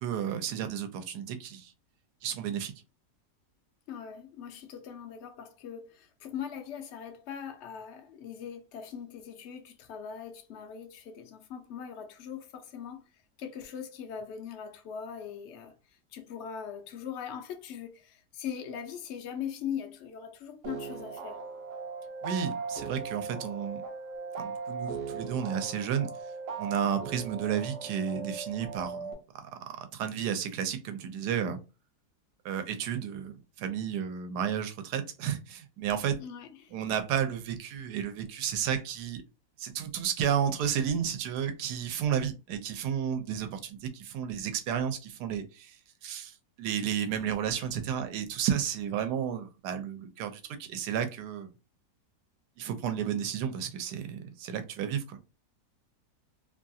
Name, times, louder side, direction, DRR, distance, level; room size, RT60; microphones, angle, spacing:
voice 1, 0.0-1.7 2.2-2.7 22.2-23.8 24.4-26.1 26.6-31.6 32.4-36.2 36.7-39.2 39.6-51.5 52.6-55.2, right 8 dB, 85° right, 1.2 m, -32 dB
voice 2, 3.9-13.1 13.4-21.4 36.2-36.7, left 8 dB, 70° left, 0.7 m, -41 dB
sound 1, 20.6-29.1, right 4 dB, 65° right, 0.8 m, -38 dB
2.9 x 2.3 x 2.6 m
omnidirectional pair, 1.7 m